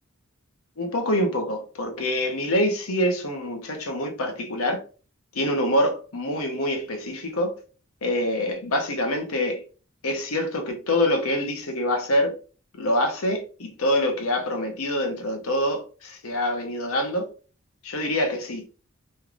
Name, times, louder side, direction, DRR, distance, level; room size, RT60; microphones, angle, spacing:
voice 1, 0.8-4.8 5.3-7.6 8.0-9.6 10.0-12.4 12.8-17.3 17.8-18.7, left 1 dB, 80° left, 0.9 m, -25 dB
3.3 x 3.1 x 2.4 m
head